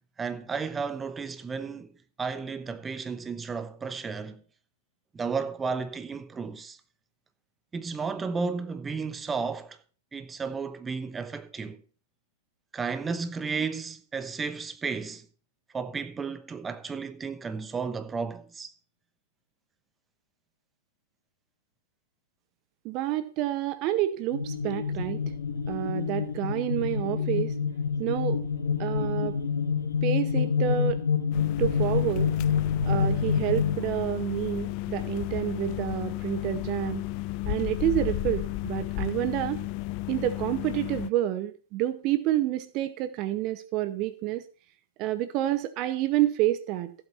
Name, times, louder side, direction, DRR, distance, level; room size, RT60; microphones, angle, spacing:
voice 1, 0.2-1.9 2.2-4.4 5.1-6.8 7.7-9.8 10.1-11.8 12.7-15.3 15.7-18.7, right 5 dB, 15° right, 1.0 m, -33 dB
voice 2, 22.8-25.2 25.7-27.5 28.0-28.4 28.8-29.4 30.0-31.0 31.6-32.3 32.8-37.0 37.4-39.6 40.1-44.4 45.0-46.9, right 13 dB, 40° right, 0.8 m, -28 dB
sound 1, 24.3-33.8, left 6 dB, 80° left, 2.3 m, -27 dB
sound 2, 31.3-41.1, left 18 dB, 45° left, 0.5 m, -33 dB
15.0 x 8.0 x 4.3 m
figure-of-eight pair, 110°, 0 cm